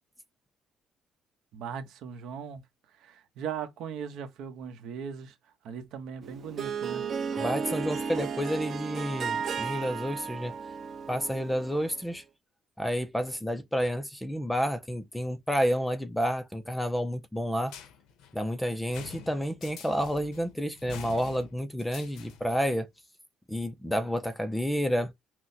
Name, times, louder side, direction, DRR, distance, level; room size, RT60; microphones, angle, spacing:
voice 1, 1.5-2.6 2.9-7.1, right 7 dB, 65° right, 0.9 m, -39 dB
Harp, 6.2-12.0, right 6 dB, 35° right, 0.7 m, -34 dB
voice 2, 7.4-10.5 11.1-12.2 12.8-17.7 18.3-22.9 23.5-25.1, equal, 5° left, 0.4 m, -30 dB
sound 1, 17.7-22.7, left 8 dB, 85° left, 0.8 m, -47 dB
6.0 x 2.1 x 2.7 m
cardioid pair, 180°, 0 cm